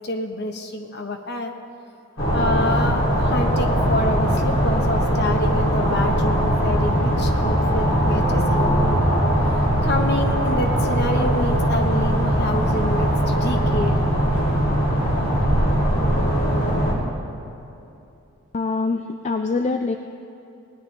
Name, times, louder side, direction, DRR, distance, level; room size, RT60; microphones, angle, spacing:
voice 1, 0.0-1.5 2.3-9.0 9.8-14.0, left 1 dB, 50° left, 4 dB, 0.9 m, -27 dB
sound 1, 2.2-16.9, equal, 70° left, 2.8 m, -20 dB
voice 2, 18.5-20.0, left 3 dB, 30° left, 6 dB, 0.3 m, -24 dB
18.5 x 10.5 x 3.3 m, 2.8 s
head